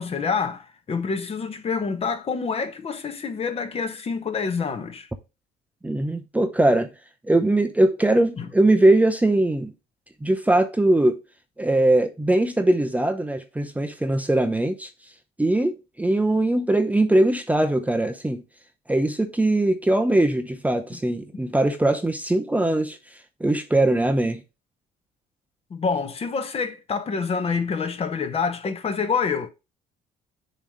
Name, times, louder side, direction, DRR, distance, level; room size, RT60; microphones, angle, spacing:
voice 1, 0.0-5.1 8.4-8.5 20.9-21.0 25.7-29.5, left 5 dB, 35° left, 1.1 m, -27 dB
voice 2, 5.8-6.9 7.3-9.7 10.2-11.2 11.6-14.9 15.4-18.4 18.9-23.0 23.4-24.4, right 1 dB, 10° right, 0.7 m, -21 dB
7.1 x 3.1 x 5.2 m
cardioid pair, 110°, 17 cm